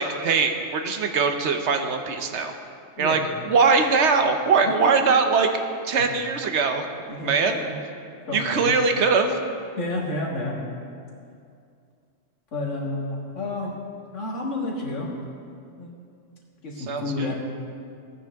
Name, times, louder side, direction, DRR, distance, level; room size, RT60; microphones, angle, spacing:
voice 1, 0.0-2.5 3.0-5.5 5.8-6.9 7.2-7.6 8.3-9.4 16.9-17.3, right 4 dB, 65° right, 6 dB, 1.0 m, -21 dB
voice 2, 7.1-7.8 8.3-8.7 9.8-10.6 12.5-13.7 14.1-15.1 15.8-16.0 16.6-17.4, left 2 dB, 75° left, -3 dB, 2.1 m, -30 dB
16.5 x 9.0 x 3.5 m, 2.4 s
omnidirectional pair, 1.3 m